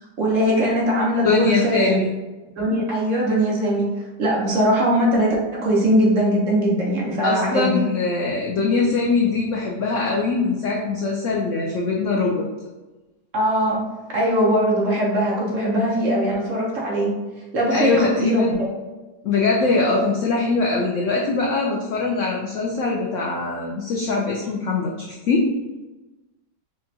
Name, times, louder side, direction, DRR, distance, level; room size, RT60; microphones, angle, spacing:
voice 1, 0.2-2.0 2.6-3.9 4.2-7.9 13.3-13.8 14.1-17.1 17.5-18.7, equal, 55° right, -4 dB, 1.0 m, -20 dB
voice 2, 1.2-2.1 7.2-12.4 17.7-18.6 19.2-25.4, left 3 dB, 85° left, -1 dB, 0.6 m, -22 dB
5.1 x 2.3 x 2.7 m, 1.1 s
omnidirectional pair, 1.8 m